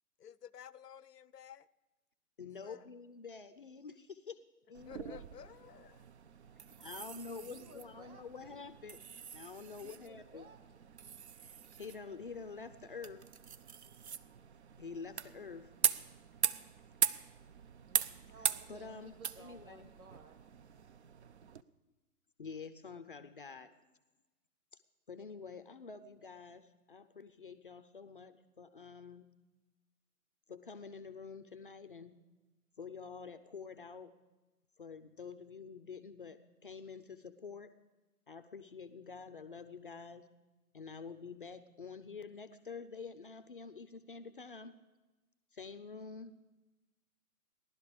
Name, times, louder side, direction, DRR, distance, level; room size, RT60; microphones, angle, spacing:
voice 1, 0.2-1.7 2.6-2.8 4.9-6.0, left 9 dB, 85° left, 20 dB, 0.6 m, -53 dB
voice 2, 2.4-4.4 4.7-5.2 6.8-9.0 9.3-10.4 11.4-13.3 14.8-15.7 18.7-19.9 22.4-23.7 25.1-29.3 30.5-32.2 32.8-34.1 34.8-37.7 38.3-40.3 40.7-44.8 45.5-46.5, left 5 dB, 35° left, 10 dB, 0.5 m, -48 dB
sound 1, 4.7-21.6, right 7 dB, 50° right, 0.5 m, -40 dB
voice 3, 7.4-8.6 9.8-10.9 17.8-20.4, right 3 dB, 65° right, 4 dB, 2.2 m, -58 dB
17.0 x 11.5 x 5.0 m, 1.1 s
figure-of-eight pair, 140°, 46 cm